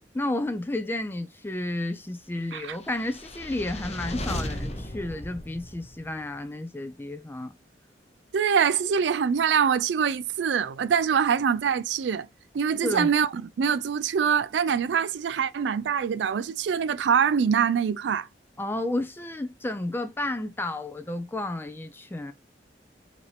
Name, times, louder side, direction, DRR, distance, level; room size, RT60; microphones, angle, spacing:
voice 1, 0.1-7.5 12.8-13.1 18.6-22.3, left 1 dB, 10° left, 0.4 m, -31 dB
sound 1, 2.8-6.2, left 1 dB, 40° left, 0.9 m, -35 dB
voice 2, 8.3-12.3 12.5-18.3, right 7 dB, 75° right, 0.4 m, -24 dB
4.9 x 2.7 x 3.3 m
head